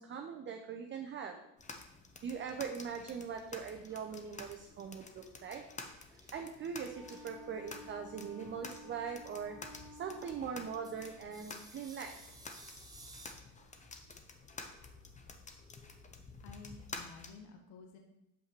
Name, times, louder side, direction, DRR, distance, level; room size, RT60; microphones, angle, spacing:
voice 1, 0.0-1.4 2.2-5.6 6.3-9.6 9.9-12.2, right 6 dB, 25° right, 3 dB, 0.5 m, -41 dB
sound 1, 1.6-17.3, left 3 dB, 15° left, 0.6 m, -51 dB
sound 2, 3.9-13.3, right 2 dB, 10° right, 0.9 m, -60 dB
Wind instrument woodwind instrument, 6.9-11.1, left 1 dB, 85° left, 2.6 m, -53 dB
voice 2, 16.4-18.0, left 4 dB, 55° left, 3 dB, 1.1 m, -52 dB
6.8 x 5.4 x 3.1 m, 0.87 s
hypercardioid pair, 75°, 48 cm